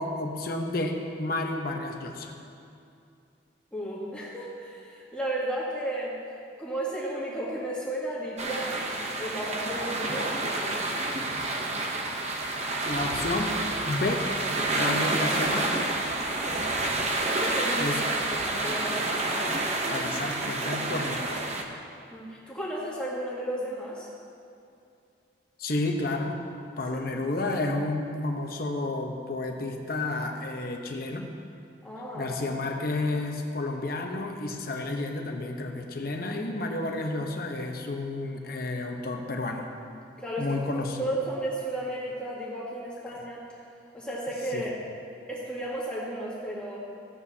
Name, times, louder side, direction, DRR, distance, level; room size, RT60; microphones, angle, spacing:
voice 1, 0.0-2.3 12.9-13.5 13.8-14.2 14.7-15.9 17.8-18.0 19.9-21.4 25.6-26.4 26.8-31.2 32.1-39.7 40.4-41.1 44.5-44.7, left 2 dB, 50° left, 2 dB, 0.9 m, -31 dB
voice 2, 3.7-6.2 6.6-10.9 16.4-16.7 17.2-18.0 18.3-19.1 22.1-24.1 31.8-32.3 40.2-40.6 41.0-43.5 43.9-44.7 45.3-46.8, right 1 dB, 5° left, -7 dB, 1.9 m, -34 dB
sound 1, 8.4-21.6, right 2 dB, 35° right, 0.8 m, -29 dB
15.0 x 8.6 x 2.8 m, 2.5 s
head